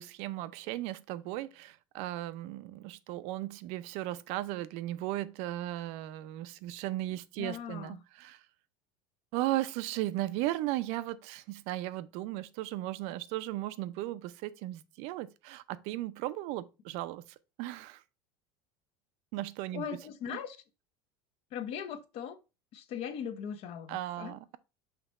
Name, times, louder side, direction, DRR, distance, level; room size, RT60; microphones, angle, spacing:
voice 1, 0.0-8.4 9.3-17.2 17.6-18.0 19.3-20.0 20.3-20.4 23.9-24.6, right 15 dB, 60° right, 0.6 m, -36 dB
voice 2, 7.4-8.0 19.7-20.6 21.5-22.4 22.7-24.4, left 8 dB, 50° left, 1.0 m, -39 dB
6.0 x 3.4 x 5.2 m
supercardioid pair, 130°, 13 cm